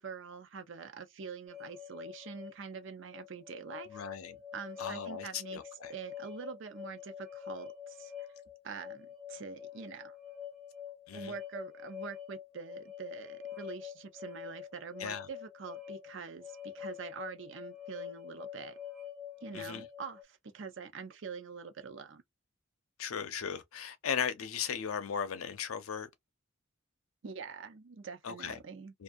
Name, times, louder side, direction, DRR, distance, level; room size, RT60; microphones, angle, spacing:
voice 1, 0.0-4.0 4.5-5.6 5.9-8.1 8.6-10.2 11.1-18.8 19.4-22.2 27.2-28.9, right 5 dB, 60° right, 0.5 m, -45 dB
sound 1, 1.5-20.2, left 10 dB, ahead, 0.4 m, -46 dB
voice 2, 3.9-4.4 4.8-5.9 11.1-11.3 15.0-15.3 19.5-19.9 23.0-26.1 28.2-28.6 28.9-29.0, left 7 dB, 90° left, 0.6 m, -37 dB
2.6 x 2.3 x 2.3 m
head